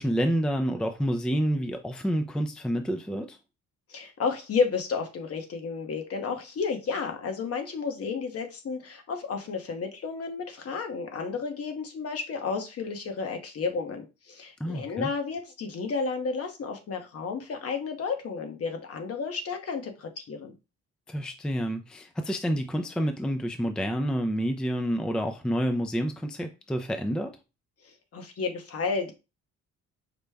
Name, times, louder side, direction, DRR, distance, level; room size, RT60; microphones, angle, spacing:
voice 1, 0.0-3.4 14.6-15.1 21.1-27.4, equal, 5° left, 0.4 m, -28 dB
voice 2, 3.9-20.5 27.8-29.1, left 5 dB, 50° left, 1.0 m, -32 dB
5.1 x 2.2 x 3.3 m
cardioid pair, 90°, 30 cm